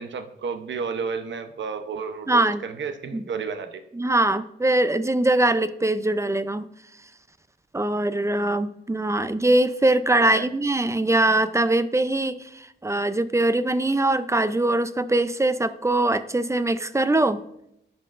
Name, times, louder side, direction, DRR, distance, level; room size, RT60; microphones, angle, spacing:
voice 1, 0.0-3.8 10.2-10.5, right 5 dB, 75° right, 7 dB, 0.8 m, -32 dB
voice 2, 2.3-2.6 3.1-3.2 3.9-6.6 7.7-17.4, right 2 dB, 15° right, 13 dB, 0.5 m, -22 dB
15.5 x 5.8 x 2.5 m, 0.77 s
cardioid pair, 85°, 19 cm